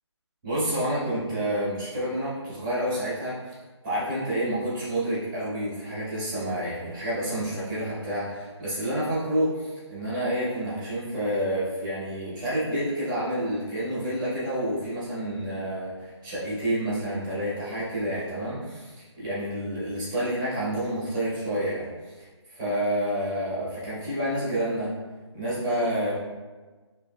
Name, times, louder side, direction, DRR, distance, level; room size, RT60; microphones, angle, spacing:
voice 1, 0.4-3.6 3.8-22.3 22.6-25.0 25.3-26.1, right 1 dB, 15° right, -10 dB, 1.4 m, -29 dB
5.0 x 3.2 x 2.2 m, 1.3 s
figure-of-eight pair, 175°, 15 cm